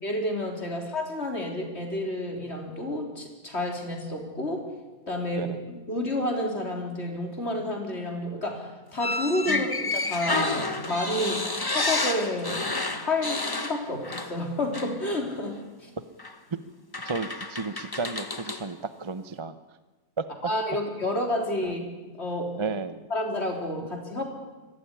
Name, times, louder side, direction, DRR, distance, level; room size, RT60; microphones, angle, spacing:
voice 1, 0.0-4.7 5.1-12.7 12.9-15.9 20.4-22.7 23.1-24.2, left 1 dB, 40° left, 2 dB, 4.2 m, -30 dB
sound 1, 9.0-14.5 14.7-15.0 16.2-16.3 16.9-18.7, left 3 dB, 15° left, 0.9 m, -30 dB
voice 2, 17.0-19.6 20.2-20.3 21.6-21.8 22.6-23.1 24.1-24.2, right 4 dB, 25° right, 12 dB, 0.7 m, -33 dB
23.0 x 17.5 x 9.9 m, 1.2 s
omnidirectional pair, 1.6 m